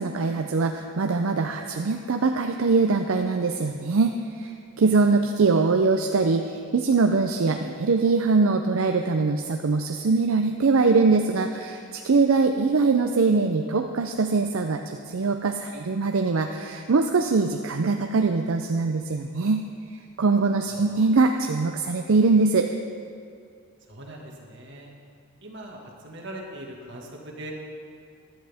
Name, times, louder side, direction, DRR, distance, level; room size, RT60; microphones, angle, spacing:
voice 1, 0.0-19.6 20.2-22.7, right 4 dB, 75° right, 5 dB, 0.5 m, -22 dB
voice 2, 23.9-24.9 25.4-27.5, right 1 dB, 55° right, 0 dB, 1.8 m, -41 dB
15.0 x 11.0 x 3.5 m, 2.4 s
head